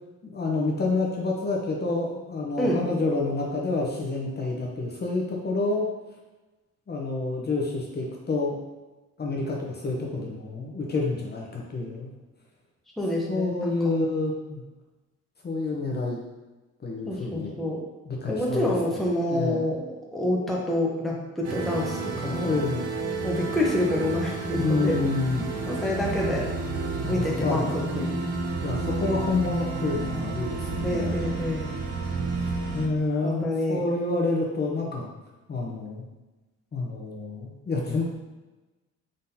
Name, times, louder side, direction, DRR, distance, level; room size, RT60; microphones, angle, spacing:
voice 1, 0.2-5.9 6.9-8.6 9.2-12.1 13.3-14.6 15.4-16.2 16.8-17.6 18.0-19.7 22.4-22.9 24.6-25.6 27.0-27.8 28.6-31.2 32.3-35.1 35.5-36.0 36.7-38.0, left 3 dB, 35° left, -2 dB, 0.8 m, -28 dB
voice 2, 13.0-13.5 13.8-13.9 17.1-17.8 18.3-22.6 23.2-25.0 25.7-26.5 27.1-28.1 30.8-31.7 33.2-33.8, left 1 dB, ahead, -4 dB, 0.8 m, -27 dB
sound 1, 21.4-32.9, right 3 dB, 55° right, 0.7 m, -30 dB
3.9 x 3.7 x 2.7 m, 1.1 s
cardioid pair, 90°, 30 cm